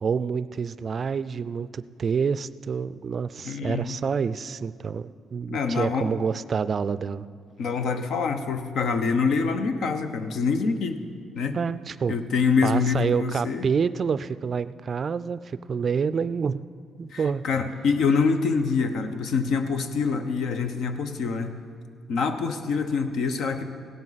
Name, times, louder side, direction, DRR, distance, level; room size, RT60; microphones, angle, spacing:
voice 1, 0.0-7.3 11.5-12.2 12.6-16.6 17.0-17.4, right 6 dB, 45° right, 15 dB, 0.3 m, -28 dB
voice 2, 3.4-4.0 5.5-6.1 7.6-11.0 11.3-11.6 12.1-13.7 17.1-21.6 22.1-23.6, left 5 dB, 70° left, 8 dB, 0.8 m, -25 dB
16.5 x 12.0 x 4.1 m, 2.1 s
cardioid pair, 90°, 0 cm